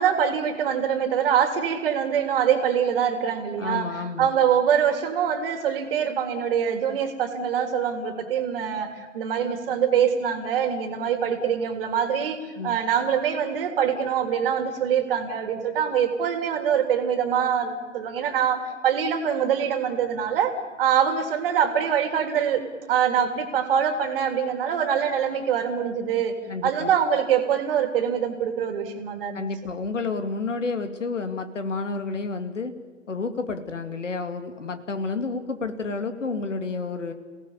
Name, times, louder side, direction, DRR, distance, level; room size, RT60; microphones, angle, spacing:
voice 1, 0.0-3.9 4.2-12.4 12.6-26.3 26.6-29.5, right 8 dB, 45° right, 7 dB, 3.3 m, -24 dB
voice 2, 3.6-4.3 12.6-12.8 26.5-26.9 29.3-32.7 33.1-37.1, left 4 dB, 75° left, 8 dB, 2.6 m, -30 dB
29.0 x 18.0 x 7.3 m, 1.4 s
figure-of-eight pair, 120°, 38 cm